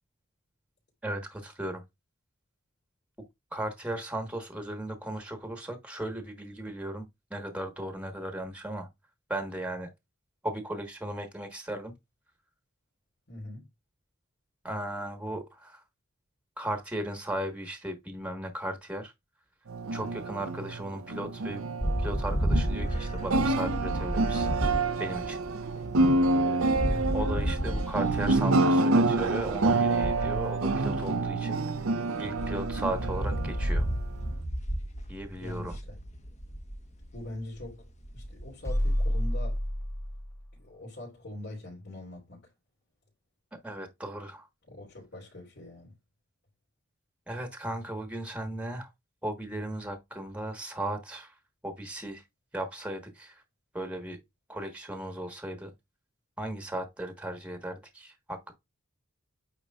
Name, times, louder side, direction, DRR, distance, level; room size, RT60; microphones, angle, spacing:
voice 1, 1.0-1.8 3.5-8.9 9.3-9.9 10.4-11.9 14.6-15.8 16.6-19.1 19.9-21.6 22.0-24.5 25.0-25.4 27.1-31.6 32.2-33.9 35.1-35.7 43.6-44.5 47.3-48.9 49.2-51.3 51.6-52.2 52.5-53.4 53.7-54.2 54.5-55.7 56.4-58.5, right 1 dB, 5° right, 1.3 m, -36 dB
voice 2, 13.3-13.7 26.8-27.1 35.4-36.0 37.1-37.9 38.1-39.6 40.5-42.5 44.7-45.9, left 1 dB, 55° left, 3.2 m, -42 dB
Steel Body Guitar Tuning, 19.7-34.4, right 2 dB, 80° right, 0.7 m, -28 dB
sound 1, 21.8-31.8 32.2-39.0, equal, 35° left, 1.2 m, -33 dB
sound 2, 38.7-40.5, equal, 15° left, 0.4 m, -29 dB
8.9 x 4.8 x 2.4 m
head